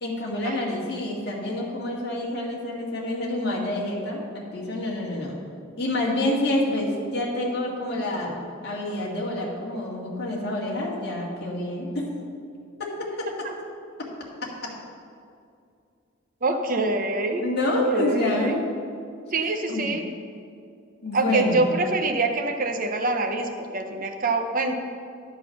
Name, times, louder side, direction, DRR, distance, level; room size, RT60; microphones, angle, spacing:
voice 1, 0.0-5.4 5.8-8.4 8.6-12.1 12.8-13.3 17.4-18.6 19.7-19.9 21.0-21.7, left 1 dB, 55° left, -4 dB, 1.9 m, -27 dB
voice 2, 16.4-17.4 17.7-18.6 19.3-20.1 21.1-24.7, right 2 dB, 40° right, 5 dB, 0.7 m, -25 dB
11.0 x 6.2 x 5.8 m, 2.4 s
head